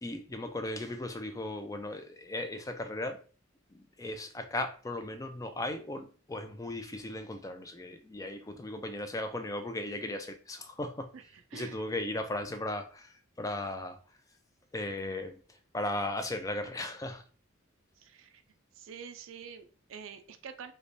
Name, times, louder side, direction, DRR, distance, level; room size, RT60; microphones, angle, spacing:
voice 1, 0.0-3.2 3.7-11.1 11.5-14.0 14.7-17.2, left 1 dB, 15° left, 0.4 m, -37 dB
voice 2, 18.0-18.4 18.8-20.7, right 7 dB, 70° right, 0.4 m, -46 dB
3.3 x 3.0 x 2.6 m
head